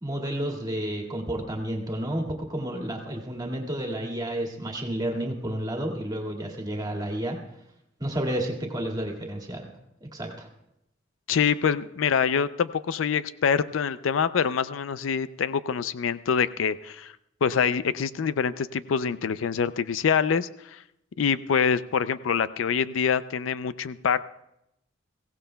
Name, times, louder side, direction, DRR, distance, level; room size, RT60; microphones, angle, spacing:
voice 1, 0.0-7.4 8.0-9.7 10.0-10.5, right 1 dB, 20° right, 1 dB, 2.0 m, -31 dB
voice 2, 11.3-17.1 17.4-20.8 21.2-24.3, left 6 dB, 90° left, 15 dB, 0.4 m, -25 dB
22.0 x 16.0 x 2.2 m, 0.83 s
head